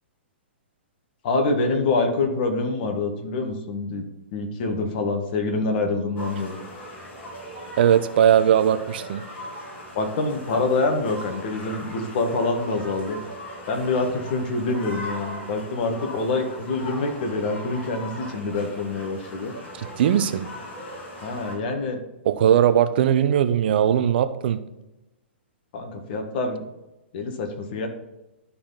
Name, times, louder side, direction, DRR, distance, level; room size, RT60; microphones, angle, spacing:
voice 1, 1.2-4.0 4.3-6.6 9.9-13.2 13.7-19.5 21.2-22.0 25.7-26.6 27.1-27.9, left 3 dB, 50° left, 5 dB, 1.7 m, -26 dB
sound 1, 6.2-21.6, equal, 30° left, 3.0 m, -39 dB
voice 2, 7.8-9.2 19.8-20.5 22.2-24.6, right 9 dB, 55° right, 11 dB, 0.7 m, -19 dB
12.0 x 4.3 x 4.1 m, 0.97 s
hypercardioid pair, 120°, 6 cm